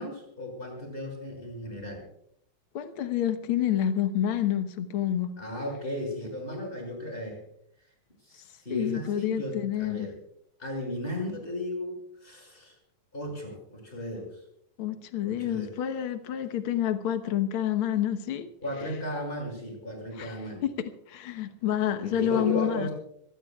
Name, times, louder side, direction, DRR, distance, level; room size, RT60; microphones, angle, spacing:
voice 1, 0.0-2.1 5.4-7.4 8.2-10.2 10.6-12.8 13.1-14.4 15.2-15.7 18.6-20.6 22.0-22.9, left 1 dB, 15° left, 6.3 m, -35 dB
voice 2, 2.7-5.3 8.7-10.1 14.8-18.5 20.2-20.3 20.6-20.7 21.1-22.9, left 10 dB, 75° left, 1.2 m, -28 dB
25.5 x 19.0 x 2.4 m
omnidirectional pair, 3.9 m